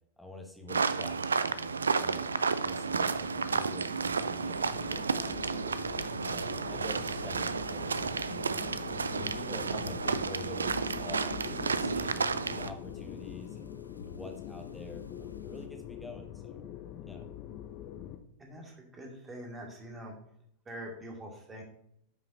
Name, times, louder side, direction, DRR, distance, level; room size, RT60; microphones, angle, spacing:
voice 1, 0.2-2.3 2.6-5.7 6.2-8.6 8.9-12.2 12.6-13.7 14.0-16.6 17.1-17.2, left 1 dB, ahead, 2 dB, 1.3 m, -47 dB
sound 1, 0.7-12.7, right 5 dB, 75° right, 0.3 m, -32 dB
sound 2, 1.3-18.2, left 10 dB, 40° left, 0.7 m, -44 dB
sound 3, 4.7-15.7, left 1 dB, 85° left, 0.5 m, -52 dB
voice 2, 18.4-20.1 20.6-21.6, equal, 15° right, 1 dB, 1.8 m, -44 dB
9.5 x 5.7 x 2.6 m, 0.70 s
figure-of-eight pair, 90°, 0 cm